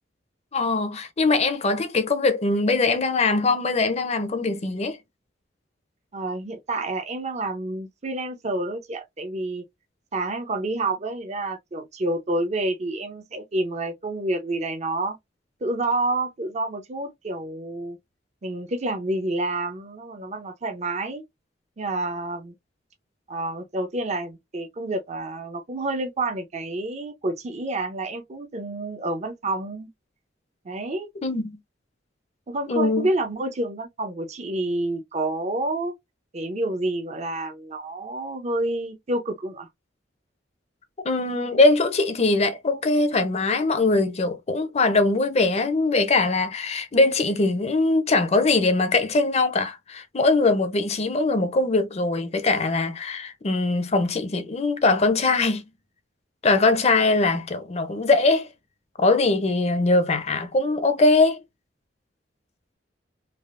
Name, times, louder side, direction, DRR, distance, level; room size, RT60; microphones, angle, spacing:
voice 1, 0.5-5.0 31.2-31.6 32.7-33.1 41.0-55.6 56.4-58.5 59.0-61.4, left 3 dB, 35° left, 0.6 m, -21 dB
voice 2, 6.1-9.6 10.1-15.2 15.6-18.0 18.4-21.2 21.8-22.5 23.3-29.9 30.6-31.1 32.5-35.9 36.3-39.7, right 2 dB, 40° right, 0.5 m, -28 dB
3.4 x 2.4 x 2.4 m
head